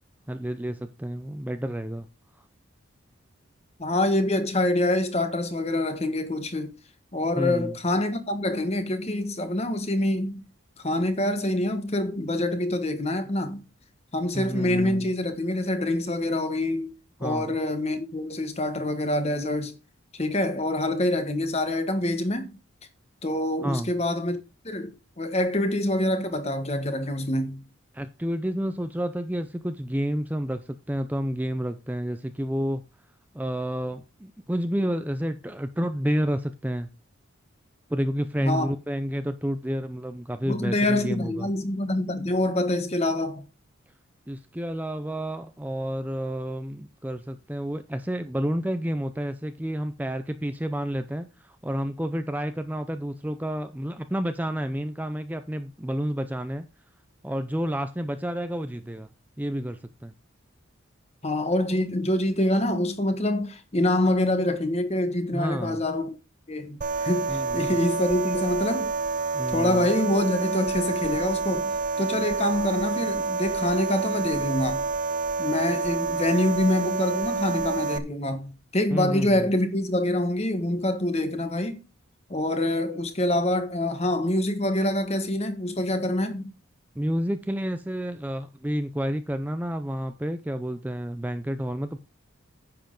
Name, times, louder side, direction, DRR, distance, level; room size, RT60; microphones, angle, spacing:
voice 1, 0.3-2.1 7.4-7.8 14.3-15.1 17.2-17.6 23.6-23.9 27.9-32.8 33.3-36.9 37.9-41.5 44.3-56.7 57.2-59.1 59.4-60.1 65.3-65.8 67.3-67.8 69.3-69.9 78.9-79.5 87.0-92.0, equal, 10° right, 0.5 m, -30 dB
voice 2, 3.8-6.7 7.1-10.4 10.8-13.6 14.1-16.9 17.2-19.8 20.1-22.5 23.2-27.6 38.4-38.7 40.5-43.5 61.2-66.1 66.5-69.0 69.5-74.9 75.4-81.8 82.3-86.5, left 1 dB, 30° left, 1.3 m, -26 dB
sound 1, 66.8-78.0, right 4 dB, 40° right, 0.8 m, -28 dB
10.0 x 7.6 x 3.8 m
head